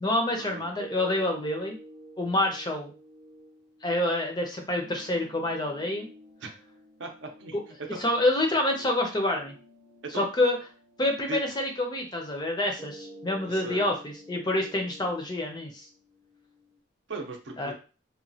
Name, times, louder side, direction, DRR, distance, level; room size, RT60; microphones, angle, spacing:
voice 1, 0.0-1.8 2.2-2.9 3.8-6.1 8.0-9.5 10.1-10.6 11.0-15.9 17.6-17.7, left 1 dB, 20° left, 2 dB, 0.5 m, -27 dB
sound 1, 0.8-16.8, right 1 dB, 25° right, 0.6 m, -51 dB
voice 2, 7.0-8.0 10.0-10.3 11.3-11.4 13.5-13.9 17.1-17.7, right 3 dB, 70° right, 3 dB, 0.6 m, -38 dB
2.9 x 2.2 x 2.7 m, 0.34 s
head